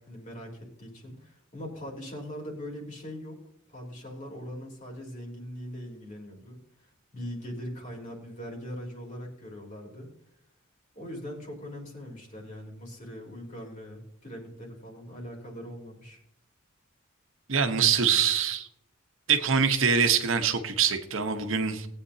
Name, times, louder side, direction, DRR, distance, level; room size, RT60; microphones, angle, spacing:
voice 1, 0.0-3.4 3.7-10.1 10.9-16.2, equal, 40° left, -1 dB, 3.3 m, -41 dB
voice 2, 17.5-18.7 19.3-21.9, right 6 dB, 70° right, 7 dB, 1.0 m, -24 dB
19.0 x 8.9 x 2.8 m, 0.75 s
head